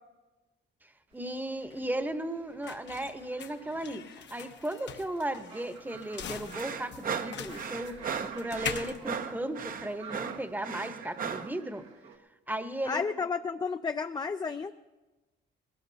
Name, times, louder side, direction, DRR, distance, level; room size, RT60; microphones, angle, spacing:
sound 1, 1.1-10.2, left 7 dB, 65° left, 0.9 m, -43 dB
voice 1, 1.1-4.0 4.3-11.8 12.5-13.0, right 1 dB, 10° right, 9 dB, 0.9 m, -36 dB
sound 2, 1.1-12.2, right 5 dB, 90° right, 1.5 m, -53 dB
sound 3, 6.5-11.5, right 6 dB, 45° right, 0.7 m, -36 dB
voice 2, 12.8-14.7, left 5 dB, 20° left, 8 dB, 0.4 m, -32 dB
20.5 x 18.5 x 2.7 m, 1.2 s
cardioid pair, 90°, 20 cm